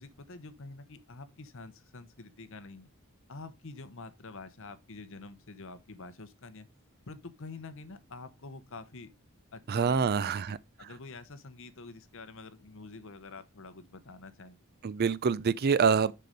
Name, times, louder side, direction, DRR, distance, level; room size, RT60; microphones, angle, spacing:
voice 1, 0.0-2.9 3.3-6.7 7.1-9.1 9.5-14.6, left 3 dB, 60° left, 0.9 m, -47 dB
voice 2, 9.7-10.6 14.8-16.1, right 6 dB, 45° right, 0.4 m, -26 dB
6.6 x 5.6 x 5.1 m
head